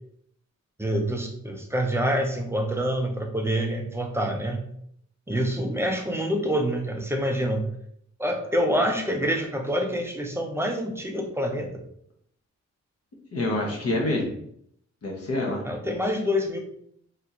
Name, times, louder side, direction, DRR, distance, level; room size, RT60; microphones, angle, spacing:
voice 1, 0.8-4.6 5.3-7.6 8.2-11.7 15.6-16.6, equal, 10° right, 2 dB, 0.4 m, -26 dB
voice 2, 5.3-5.6 13.3-14.4 15.0-15.6, left 2 dB, 55° left, -1 dB, 0.8 m, -27 dB
3.4 x 2.5 x 2.8 m, 0.68 s
wide cardioid pair, 130°, 29 cm